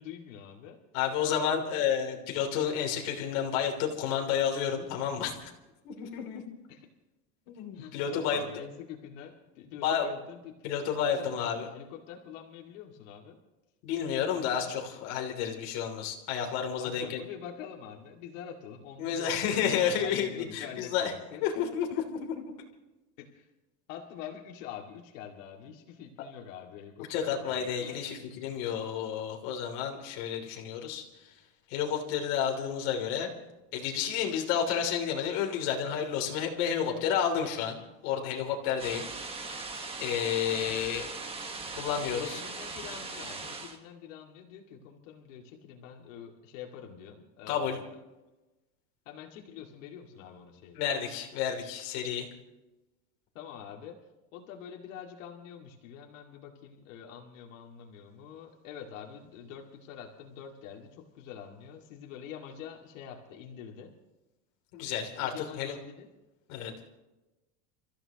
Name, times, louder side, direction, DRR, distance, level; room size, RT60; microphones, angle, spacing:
voice 1, 0.0-0.8 1.3-1.8 6.7-6.9 7.7-10.8 11.1-11.3 11.6-13.4 16.8-21.5 23.2-23.5 23.9-28.0 28.7-28.8 40.6-40.8 42.0-48.0 49.1-50.8 53.3-54.0 54.3-63.9 65.2-66.1, left 8 dB, 85° left, 0 dB, 2.3 m, -46 dB
voice 2, 0.9-5.5 5.8-6.4 7.5-8.4 9.8-10.1 10.6-11.7 13.8-17.2 19.0-21.1 21.4-22.5 27.1-31.0 31.7-33.3 33.7-39.1 40.0-41.1 41.8-42.4 47.5-47.8 50.7-52.3 64.7-65.8 66.5-66.7, left 8 dB, 55° left, 1 dB, 3.2 m, -31 dB
sound 1, 38.8-43.8, right 3 dB, 15° right, 1.4 m, -39 dB
29.5 x 14.5 x 3.0 m, 1.0 s
cardioid pair, 170°, 38 cm